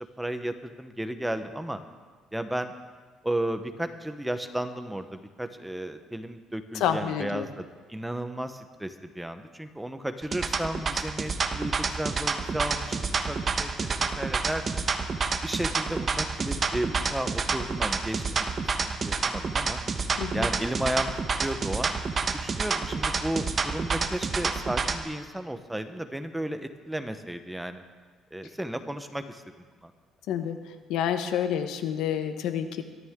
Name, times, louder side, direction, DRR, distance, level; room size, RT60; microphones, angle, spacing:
voice 1, 0.2-1.8 2.3-2.7 3.2-14.9 15.4-19.8 20.3-21.1 21.4-21.9 22.2-27.8 28.3-29.4 29.8-29.9, right 1 dB, 5° right, 8 dB, 1.0 m, -34 dB
voice 2, 6.8-7.5 20.2-20.5 30.3-30.6 30.9-32.8, left 9 dB, 80° left, 8 dB, 1.1 m, -28 dB
sound 1, 10.2-25.0, right 4 dB, 35° right, 1.1 m, -28 dB
22.0 x 13.0 x 3.7 m, 1.4 s
cardioid pair, 115°, 0 cm